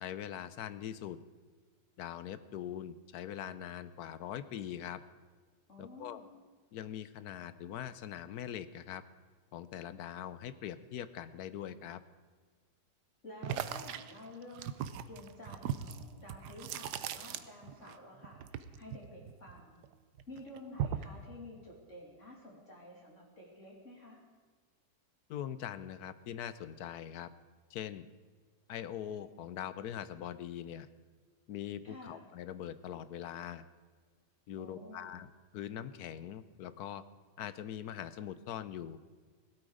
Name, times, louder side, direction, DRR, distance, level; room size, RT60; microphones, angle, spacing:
voice 1, 0.0-1.2 2.0-5.0 5.8-6.2 6.7-9.0 9.5-12.0 25.3-27.3 27.7-28.1 28.7-30.9 31.5-33.6 34.5-35.3 35.5-37.0 37.4-39.0, left 10 dB, 70° left, 14 dB, 1.2 m, -42 dB
voice 2, 5.7-6.3 13.2-14.8 15.1-19.8 20.3-24.2 31.8-32.2 34.6-35.1, left 1 dB, 45° left, -3 dB, 3.4 m, -51 dB
sound 1, 13.4-18.0 18.2-19.9 20.2-21.2, right 9 dB, 80° right, 1.3 m, -39 dB
17.0 x 12.5 x 5.0 m, 1.5 s
omnidirectional pair, 1.8 m